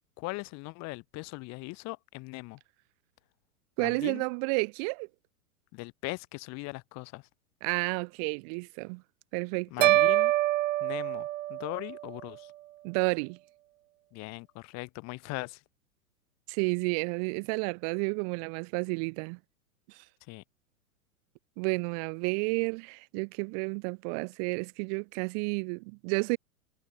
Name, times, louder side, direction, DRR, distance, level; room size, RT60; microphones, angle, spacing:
voice 1, 0.2-2.6 3.8-4.2 5.7-7.2 9.7-10.3 10.8-12.5 14.1-15.6 20.3-20.4, left 24 dB, 35° left, 1.7 m, -39 dB
voice 2, 3.8-5.1 7.6-9.0 9.3-10.0 12.8-13.4 16.5-19.4 21.6-26.4, right 39 dB, 25° right, 0.5 m, -31 dB
sound 1, 9.8-12.1, right 15 dB, 55° right, 0.9 m, -25 dB
figure-of-eight pair, 105°, 46 cm